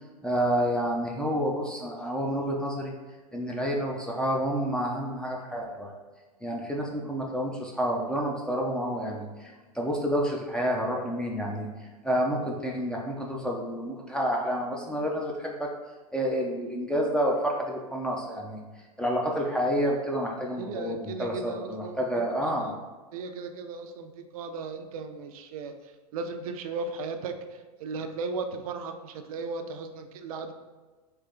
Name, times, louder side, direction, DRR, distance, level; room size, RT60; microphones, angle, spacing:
voice 1, 0.2-2.9 3.3-5.9 6.4-11.7 12.0-15.7 16.1-18.6 19.0-22.7, equal, 5° left, -2 dB, 0.4 m, -29 dB
voice 2, 20.6-22.0 22.4-22.7 23.1-25.7 26.1-27.4 27.8-30.5, right 4 dB, 65° right, 7 dB, 0.5 m, -36 dB
3.4 x 2.7 x 3.8 m, 1.3 s
hypercardioid pair, 105°, 20 cm